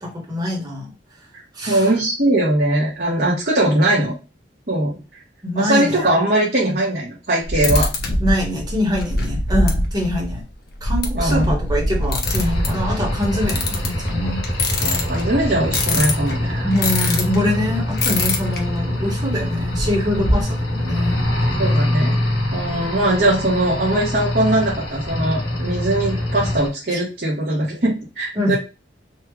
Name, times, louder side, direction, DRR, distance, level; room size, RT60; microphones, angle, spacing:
voice 1, 0.0-0.9 1.5-1.9 5.4-6.2 8.2-10.4 10.8-14.4 16.6-21.2 26.9-27.0 28.3-28.6, left 1 dB, 20° right, -2 dB, 1.5 m, -24 dB
voice 2, 1.7-4.2 4.7-5.0 5.5-7.9 11.1-11.5 14.8-16.7 16.9-17.1 21.6-22.2 22.5-28.6, right 1 dB, 55° right, -6 dB, 1.5 m, -20 dB
sound 1, 7.4-17.4 17.9-18.6 18.9-19.0 19.2-20.4, left 2 dB, 60° left, 0.9 m, -23 dB
sound 2, 12.2-26.7, left 1 dB, 75° left, 1.6 m, -24 dB
4.3 x 2.4 x 3.2 m, 0.30 s
head